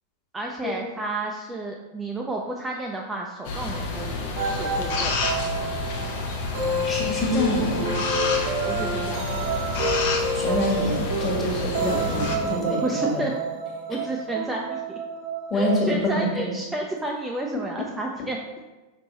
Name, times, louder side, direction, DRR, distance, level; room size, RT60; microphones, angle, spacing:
voice 1, 0.3-4.3 4.6-5.1 8.7-9.3 12.5-13.4 13.9-15.0 15.5-18.4, right 2 dB, 10° right, 0 dB, 0.4 m, -31 dB
sound 1, 3.4-12.4, left 3 dB, 50° left, 0.7 m, -29 dB
sound 2, 4.4-16.0, right 2 dB, 50° right, 0.7 m, -29 dB
voice 2, 6.8-7.9 10.3-13.1 15.5-16.5, left 1 dB, 20° left, -2 dB, 1.2 m, -26 dB
4.9 x 3.4 x 3.0 m, 1.1 s
figure-of-eight pair, 90°, 0 cm